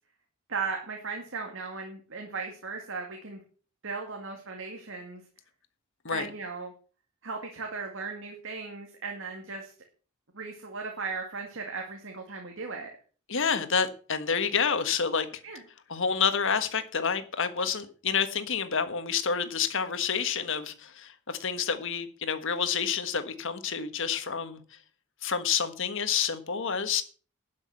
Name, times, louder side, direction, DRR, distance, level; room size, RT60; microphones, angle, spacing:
voice 1, 0.5-3.4 3.8-5.2 6.1-6.7 7.2-9.7 10.3-12.9 15.4-15.6, right 4 dB, 65° right, 2.2 m, -37 dB
voice 2, 13.3-15.4 15.9-24.6 25.2-27.0, left 6 dB, 65° left, 1.5 m, -28 dB
12.0 x 6.3 x 7.7 m
head